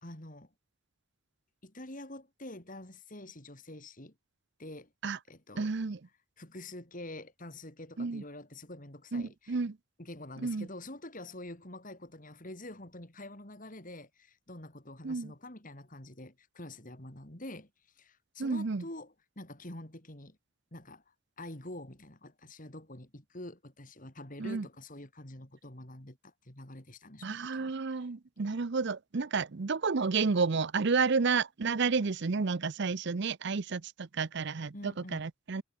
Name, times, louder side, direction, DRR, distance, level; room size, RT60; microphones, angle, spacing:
voice 1, 0.0-0.5 1.6-4.1 4.6-4.9 5.3-5.7 6.4-9.6 10.0-17.7 17.9-20.4 20.7-21.0 21.4-27.7 34.7-35.2, left 1 dB, 40° left, 3.3 m, -46 dB
voice 2, 5.6-6.0 8.0-8.2 9.1-9.8 10.4-10.7 15.0-15.3 18.4-18.8 24.4-24.7 27.2-35.6, right 4 dB, 55° right, 0.6 m, -31 dB
head